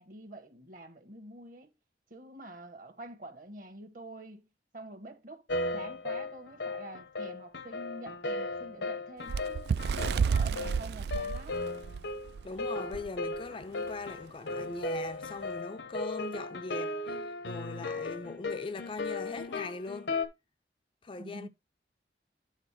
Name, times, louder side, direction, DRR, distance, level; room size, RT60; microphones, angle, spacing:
voice 1, 0.0-1.7 2.1-4.5 4.7-5.5 5.7-9.7 10.1-11.7 21.2-21.5, right 1 dB, 50° right, 1.3 m, -47 dB
sound 1, 5.5-20.3, left 2 dB, 80° left, 0.9 m, -36 dB
Bird, 9.3-12.5 12.9-13.1 13.4-13.6 14.4-14.5, right 6 dB, 65° right, 0.3 m, -30 dB
voice 2, 12.4-20.1 21.0-21.5, left 3 dB, 30° left, 0.4 m, -41 dB
9.0 x 4.1 x 4.7 m
head